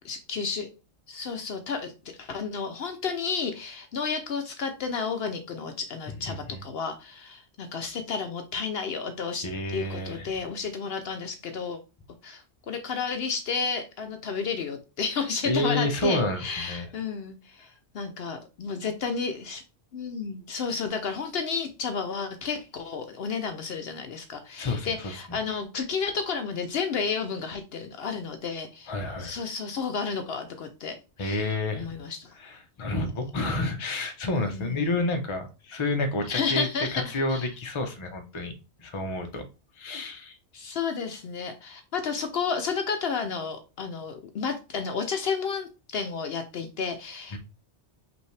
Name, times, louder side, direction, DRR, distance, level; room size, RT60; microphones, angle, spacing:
voice 1, 0.0-0.7 1.1-1.9 2.2-11.8 12.2-17.7 17.9-19.6 19.9-28.9 29.2-31.5 31.7-32.3 34.3-35.0 36.3-37.5 40.5-47.4, left 5 dB, 65° left, 0.8 m, -32 dB
voice 2, 6.3-6.6 9.4-10.3 15.4-16.9 24.6-25.4 28.9-29.4 31.2-31.9 32.4-38.5 38.8-39.4 39.8-40.4 47.3-47.4, left 2 dB, 30° left, 0.6 m, -30 dB
5.4 x 2.7 x 3.2 m
omnidirectional pair, 1.2 m